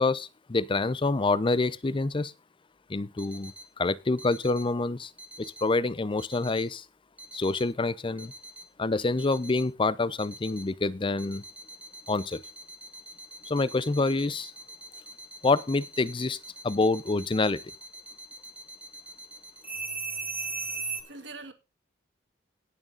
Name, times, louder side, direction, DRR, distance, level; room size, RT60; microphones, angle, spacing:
voice 1, 0.0-2.3 2.9-5.1 5.4-6.8 7.3-8.3 8.8-11.4 12.1-12.4 13.5-14.5 15.4-16.4 16.6-17.6, left 3 dB, 30° left, 0.6 m, -27 dB
sound 1, 3.2-3.6 4.2-4.6 5.2-5.6 6.2-6.6 7.2-7.6 8.2-8.6 9.2-9.6 10.2-10.6 11.2-21.0, right 3 dB, 10° right, 1.6 m, -40 dB
voice 2, 20.4-20.7 21.1-21.5, right 3 dB, 70° right, 1.6 m, -44 dB
18.0 x 6.5 x 3.9 m
head